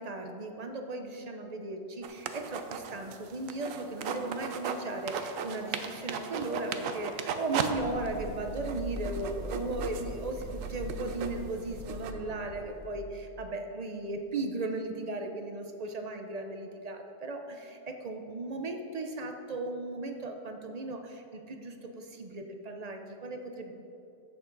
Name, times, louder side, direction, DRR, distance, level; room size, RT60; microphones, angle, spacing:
voice 1, 0.0-23.7, right 2 dB, 35° right, 4 dB, 0.7 m, -37 dB
sound 1, 2.0-4.8 5.1-7.7 8.1-8.2 8.6-12.1, right 7 dB, 70° right, 1.0 m, -36 dB
sound 2, 7.7-13.0, left 1 dB, 60° left, 1.7 m, -41 dB
14.5 x 7.0 x 3.9 m, 2.7 s
omnidirectional pair, 1.5 m